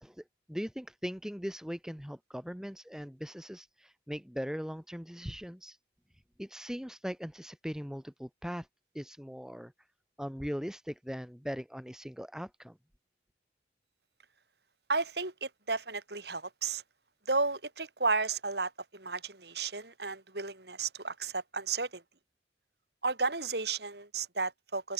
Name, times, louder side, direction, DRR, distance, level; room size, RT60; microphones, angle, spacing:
voice 1, 0.0-5.8 6.4-8.7 8.9-9.7 10.2-12.8, equal, 5° right, 2.3 m, -40 dB
voice 2, 14.9-16.8 17.3-22.0 23.0-24.9, right 4 dB, 65° right, 4.8 m, -33 dB
open air
head